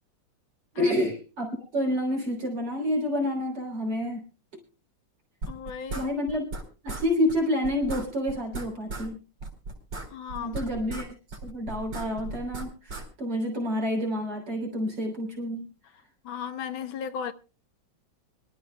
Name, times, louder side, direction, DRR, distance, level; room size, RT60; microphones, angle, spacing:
voice 1, 0.7-4.3 5.9-6.5 6.8-9.2 10.4-11.1 11.4-15.7, left 1 dB, 55° right, 3.8 m, -28 dB
sound 1, 5.4-6.6 6.9-7.0 7.3-7.4 7.6-9.1 9.4-11.1 11.3-13.0, right 2 dB, 85° right, 4.4 m, -36 dB
voice 2, 5.5-6.1 10.1-10.6 16.2-17.3, left 7 dB, 70° left, 1.6 m, -35 dB
24.5 x 12.5 x 2.2 m
omnidirectional pair, 2.3 m